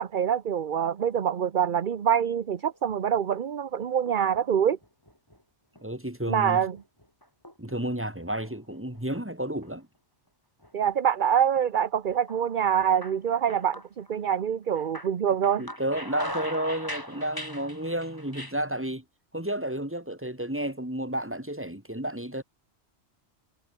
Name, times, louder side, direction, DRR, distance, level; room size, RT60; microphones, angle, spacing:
voice 1, 0.0-4.8 6.3-6.8 10.7-15.6, right 8 dB, 50° right, 0.9 m, -25 dB
sound 1, 2.7-3.4 3.8-4.4 4.8-5.4 5.8-5.9 6.7-7.8 8.2-9.2 9.6-9.7 10.6-11.2 11.6-11.7 12.1-14.4 14.7-18.5, equal, 15° left, 6.4 m, -41 dB
voice 2, 5.8-6.6 7.6-9.9 15.6-19.0 19.3-22.4, right 1 dB, 10° right, 3.2 m, -31 dB
omnidirectional pair, 1.2 m